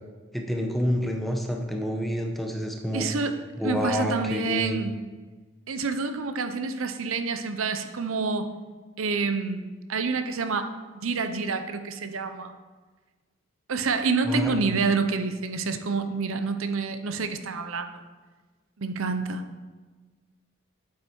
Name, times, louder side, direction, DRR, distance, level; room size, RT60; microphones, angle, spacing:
voice 1, 0.3-3.0 3.6-4.8 14.3-14.6, equal, ahead, 2 dB, 0.9 m, -28 dB
voice 2, 2.9-3.4 3.6-5.0 5.7-8.5 9.0-10.7 10.9-12.5 13.7-18.0 18.8-19.4, right 4 dB, 75° right, 8 dB, 0.7 m, -28 dB
8.6 x 7.9 x 4.6 m, 1.3 s
head